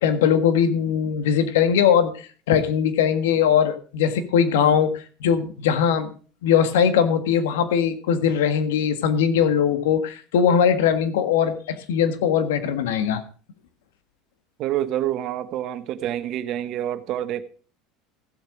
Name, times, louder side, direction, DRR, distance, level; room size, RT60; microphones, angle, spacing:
voice 1, 0.0-6.1 6.4-13.2, left 8 dB, 85° left, 1.6 m, -20 dB
voice 2, 14.6-17.4, right 12 dB, 55° right, 1.2 m, -27 dB
15.0 x 8.0 x 5.0 m
hypercardioid pair, 95°, 0 cm